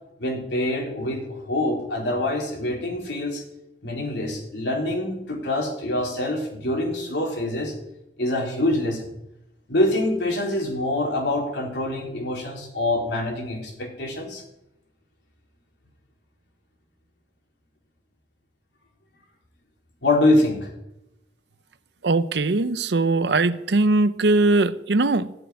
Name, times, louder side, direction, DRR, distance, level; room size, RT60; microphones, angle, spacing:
voice 1, 0.2-3.4 3.8-7.7 8.2-9.1 9.7-14.4 20.0-20.7, left 1 dB, 75° left, 3.7 m, -25 dB
voice 2, 22.0-25.3, right 2 dB, 65° right, 0.7 m, -20 dB
14.0 x 7.8 x 9.6 m
head